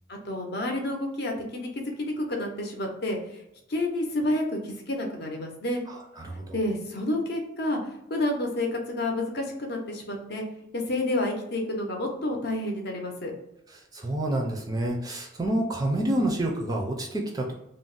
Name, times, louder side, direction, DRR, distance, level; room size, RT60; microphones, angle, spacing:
voice 1, 0.1-3.4 3.7-5.8 6.5-10.4 10.7-13.3, left 1 dB, 55° left, 1 dB, 0.6 m, -29 dB
voice 2, 6.2-6.6 13.7-17.5, right 1 dB, 20° right, 0 dB, 0.4 m, -28 dB
2.5 x 2.0 x 3.7 m, 0.85 s
head